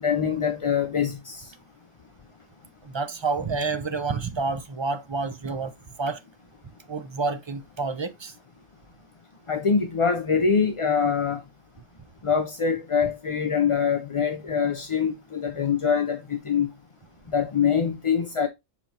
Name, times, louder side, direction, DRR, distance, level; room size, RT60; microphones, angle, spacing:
voice 1, 0.0-1.5 9.5-11.4 12.2-16.7 17.3-18.5, left 6 dB, 40° left, 0.5 m, -24 dB
voice 2, 2.8-5.7 6.0-6.2 6.9-8.3, right 4 dB, 30° right, 0.5 m, -29 dB
7.4 x 4.5 x 2.8 m
omnidirectional pair, 1.3 m